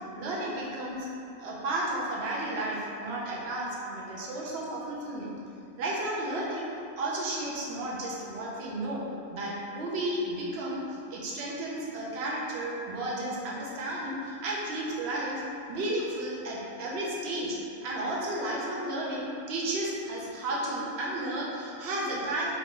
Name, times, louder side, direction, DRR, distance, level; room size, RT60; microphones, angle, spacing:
voice 1, 0.1-1.1 1.4-5.3 5.8-6.7 7.0-9.0 9.3-10.8 11.1-15.4 15.7-22.5, right 1 dB, 60° right, -5 dB, 0.7 m, -33 dB
2.9 x 2.5 x 3.7 m, 2.6 s
omnidirectional pair, 1.5 m